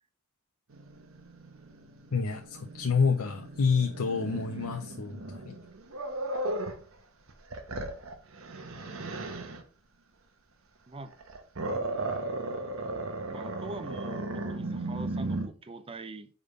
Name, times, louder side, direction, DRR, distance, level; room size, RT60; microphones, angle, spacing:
Growling, 0.7-6.8 7.3-9.6 11.0-15.5, right 2 dB, 70° right, 0.9 m, -36 dB
voice 1, 2.1-5.6, left 5 dB, 90° left, 0.6 m, -28 dB
voice 2, 13.3-16.3, right 2 dB, 25° right, 0.4 m, -43 dB
5.2 x 3.6 x 5.3 m
head